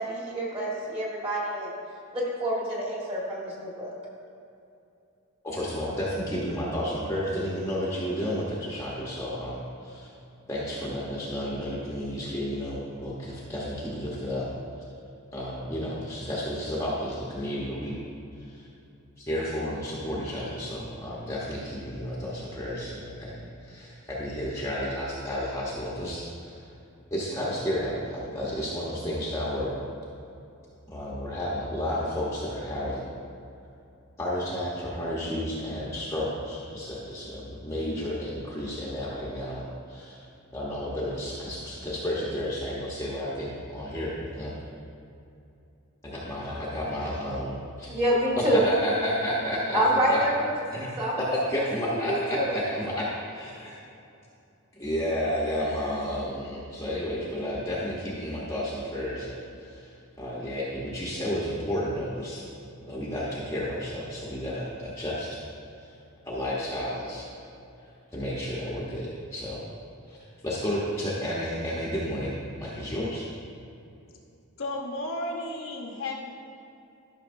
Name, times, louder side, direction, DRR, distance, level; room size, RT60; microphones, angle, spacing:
voice 1, 0.0-1.7 2.1-3.9 47.9-48.6 49.7-50.5 50.8-51.2 51.5-52.5, right 1 dB, 25° right, -5 dB, 1.7 m, -27 dB
voice 2, 5.4-10.1 10.5-14.5 15.3-18.0 18.5-18.7 19.2-26.5 27.1-29.8 30.9-33.1 34.2-40.2 40.5-44.6 46.0-47.9 48.4-49.8 50.1-50.2 50.7-50.9 51.2-53.1 53.4-53.5 54.8-62.4 62.9-65.4 65.8-65.9 66.2-67.2 68.1-69.6 70.1-70.2 70.4-73.3, equal, 15° left, -7 dB, 0.9 m, -32 dB
voice 3, 74.6-76.3, left 2 dB, 60° left, -1 dB, 1.0 m, -33 dB
12.5 x 6.1 x 2.6 m, 2.6 s
head